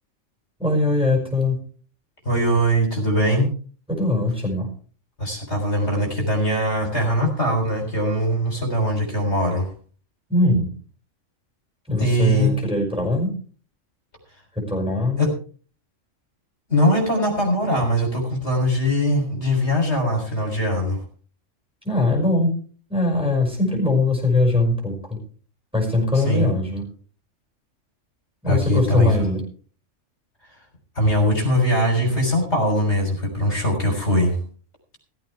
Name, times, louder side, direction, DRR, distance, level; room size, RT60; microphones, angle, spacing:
voice 1, 0.6-1.6 3.9-4.7 10.3-10.7 11.9-13.3 14.6-15.2 21.8-22.5 22.9-25.2 25.7-26.8 28.4-29.4, left 2 dB, 5° right, 0 dB, 5.8 m, -21 dB
voice 2, 2.2-3.5 5.2-9.7 12.0-12.6 15.2-15.3 16.7-21.0 26.1-26.5 28.5-29.3 31.0-34.4, equal, 60° left, 1 dB, 4.1 m, -21 dB
16.5 x 14.5 x 3.4 m, 0.41 s
omnidirectional pair, 1.3 m